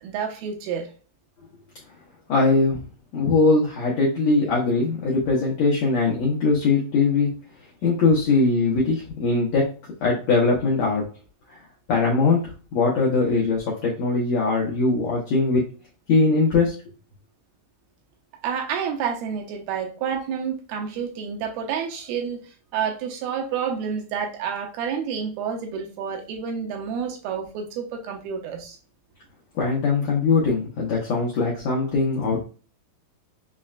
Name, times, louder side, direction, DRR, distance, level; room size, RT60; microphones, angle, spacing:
voice 1, 0.0-0.9 18.4-22.4 22.7-28.8, right 7 dB, 85° right, 2 dB, 2.5 m, -29 dB
voice 2, 2.3-2.8 3.1-7.3 7.8-9.7 10.0-11.0 11.5-11.6 11.9-15.6 16.1-16.7 29.5-32.4, left 3 dB, 85° left, -3 dB, 1.5 m, -21 dB
6.1 x 2.1 x 2.4 m, 0.37 s
omnidirectional pair, 4.4 m